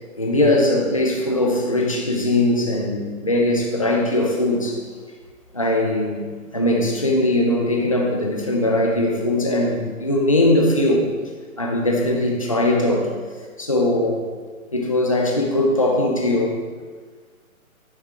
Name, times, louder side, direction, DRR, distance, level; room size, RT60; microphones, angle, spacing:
voice 1, 0.2-4.9 5.5-6.3 6.5-11.1 11.6-13.1 13.6-14.2 14.7-16.5, left 1 dB, 25° left, 1 dB, 0.6 m, -20 dB
9.8 x 7.3 x 3.6 m, 1.5 s
hypercardioid pair, 175°, 43 cm